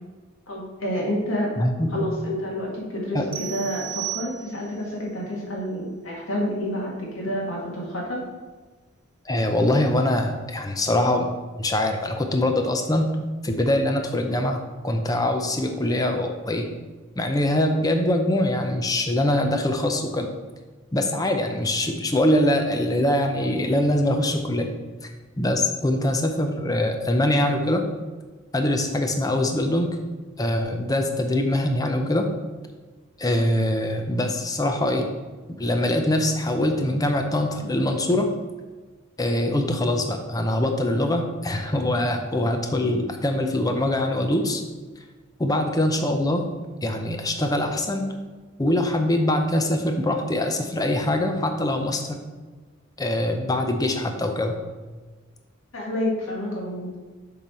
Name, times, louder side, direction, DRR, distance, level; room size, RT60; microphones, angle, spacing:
voice 1, 0.5-1.5 1.9-8.2 55.7-57.0, equal, 80° left, -2 dB, 1.8 m, -29 dB
voice 2, 1.6-2.0 3.1-3.3 9.3-11.3 11.6-13.1 13.4-16.7 17.2-20.3 20.9-24.7 25.4-27.8 28.5-29.9 30.4-32.3 33.2-35.1 35.5-38.3 39.2-44.6 45.4-46.4 46.8-48.0 48.6-52.2 53.0-54.6, left 1 dB, 20° left, 5 dB, 0.6 m, -23 dB
sound 1, 3.3-4.8, right 13 dB, 25° right, 0.4 m, -34 dB
7.1 x 3.9 x 4.3 m, 1.3 s
head